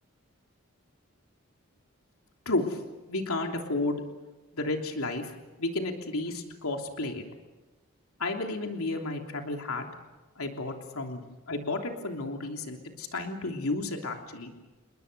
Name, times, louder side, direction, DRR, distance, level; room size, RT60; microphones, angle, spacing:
voice 1, 2.4-2.8 3.1-4.0 4.5-7.2 8.2-9.9 10.4-14.5, left 2 dB, 90° left, 3 dB, 3.3 m, -32 dB
29.5 x 21.0 x 6.8 m, 1.1 s
head